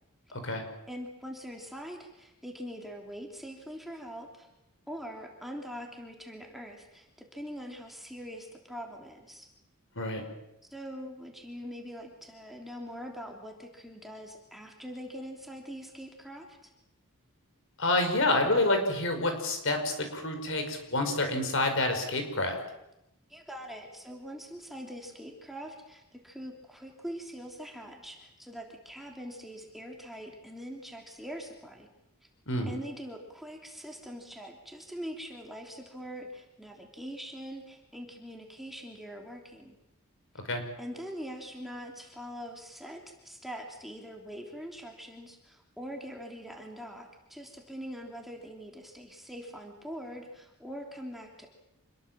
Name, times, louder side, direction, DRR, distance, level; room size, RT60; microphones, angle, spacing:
voice 1, 0.3-0.6 10.0-10.2 17.8-22.6 32.5-32.7 40.5-40.6, left 2 dB, 60° left, 6 dB, 5.5 m, -28 dB
voice 2, 0.9-4.5 4.9-7.1 7.3-9.5 10.7-16.7 23.3-31.9 32.7-39.8 40.8-51.5, equal, ahead, 1 dB, 3.2 m, -43 dB
27.0 x 21.5 x 7.6 m, 0.88 s
head